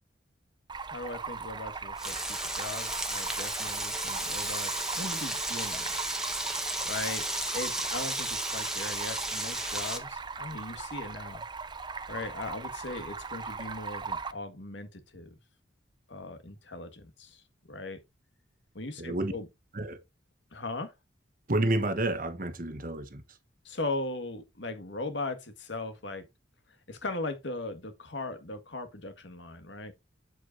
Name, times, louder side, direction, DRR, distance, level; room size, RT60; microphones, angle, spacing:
Stream, 0.7-14.3, right 5 dB, 25° right, 0.5 m, -39 dB
voice 1, 0.9-5.9 6.8-7.3 7.5-11.4 12.1-15.3 16.1-17.4 17.7-18.0 18.8-19.5 20.5-20.9 23.7-26.3 26.9-29.9, left 2 dB, 70° left, 1.8 m, -38 dB
Frying (food), 2.0-10.0, right 1 dB, 5° right, 1.2 m, -33 dB
voice 2, 19.0-19.3 19.7-20.0 21.5-23.2, right 2 dB, 45° right, 1.1 m, -29 dB
8.1 x 7.8 x 2.7 m
head